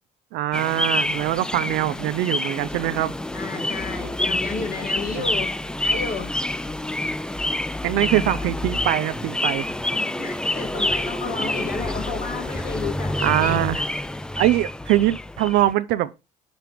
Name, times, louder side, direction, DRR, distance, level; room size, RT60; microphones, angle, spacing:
voice 1, 0.3-3.1 5.1-5.2 7.8-9.7 13.2-13.9 14.4-16.1, right 15 dB, 90° right, 0.6 m, -22 dB
sound 1, 0.5-15.7, left 1 dB, 5° left, 0.3 m, -27 dB
voice 2, 3.3-5.6 5.8-6.4 10.2-13.7, left 4 dB, 60° left, 2.2 m, -32 dB
6.6 x 6.1 x 3.0 m
cardioid pair, 110°, 17 cm